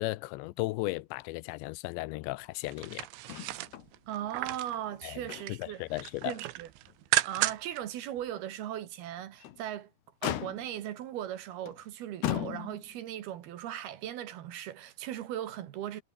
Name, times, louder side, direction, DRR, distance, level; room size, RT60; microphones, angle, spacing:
voice 1, 0.0-3.1 5.0-5.2 5.5-6.4, left 20 dB, 85° left, 2.9 m, -35 dB
sound 1, 2.7-4.8 5.1-5.7 6.0-7.8 8.2-8.3, right 16 dB, 80° right, 3.5 m, -33 dB
Motor vehicle (road), 3.3-3.9 4.2-4.3 4.8-5.8 6.2-6.3 6.9-7.0 9.2-9.7 10.2-10.9 11.7-11.8 12.2-13.0 14.1-14.2, left 12 dB, 70° left, 3.5 m, -36 dB
voice 2, 4.1-6.7 7.2-9.9 10.2-16.0, right 11 dB, 65° right, 3.1 m, -38 dB
omnidirectional pair, 5.2 m